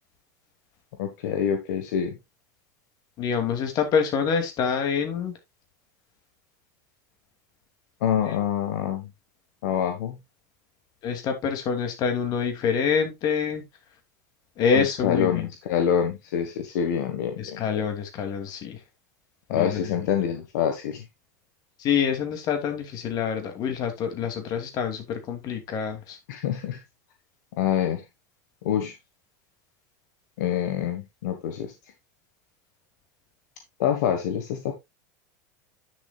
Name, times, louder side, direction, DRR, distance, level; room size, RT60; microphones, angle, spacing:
voice 1, 1.0-2.2 8.0-9.1 9.6-10.2 14.7-17.8 19.5-21.0 26.3-26.8 27.5-28.0 28.6-28.9 30.4-31.7 33.8-34.7, left 9 dB, 75° left, 1.5 m, -26 dB
voice 2, 3.2-5.3 8.3-8.4 11.0-13.6 14.6-15.5 17.4-18.8 19.5-20.0 21.8-26.2, left 6 dB, 45° left, 2.8 m, -26 dB
9.8 x 7.1 x 2.4 m
supercardioid pair, 115°, 9 cm